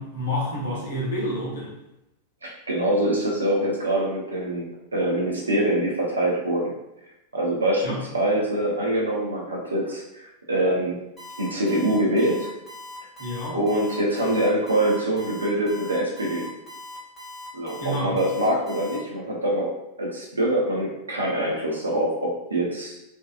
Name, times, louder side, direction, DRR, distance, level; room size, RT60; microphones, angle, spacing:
voice 1, 0.0-1.7 7.8-8.0 13.2-13.6 17.8-18.2, left 1 dB, 65° left, -5 dB, 0.9 m, -29 dB
voice 2, 2.4-6.7 7.3-10.0 10.5-11.0 11.4-12.5 13.5-16.5 17.5-22.9, right 1 dB, 75° right, -3 dB, 0.7 m, -24 dB
Alarm, 11.2-19.0, left 1 dB, 10° left, 0.9 m, -40 dB
2.5 x 2.3 x 2.4 m, 0.90 s
figure-of-eight pair, 90°, 0 cm